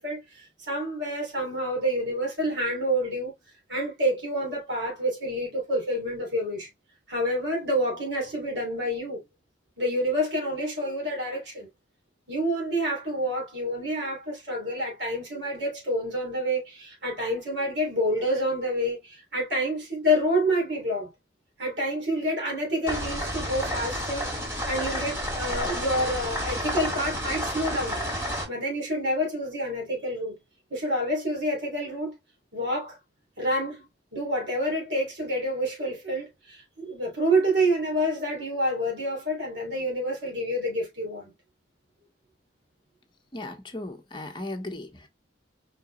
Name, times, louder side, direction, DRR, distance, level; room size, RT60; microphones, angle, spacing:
voice 1, 0.0-3.3 3.7-6.7 7.1-9.2 9.8-11.7 12.3-21.1 21.6-24.3 24.7-28.0 28.5-30.4 30.7-32.2 32.5-33.0 33.4-41.3, equal, 70° right, 3.0 m, -28 dB
sound 1, 22.9-28.4, equal, 15° right, 1.8 m, -30 dB
voice 2, 43.3-45.1, left 2 dB, 25° left, 1.0 m, -36 dB
5.0 x 4.4 x 2.2 m
head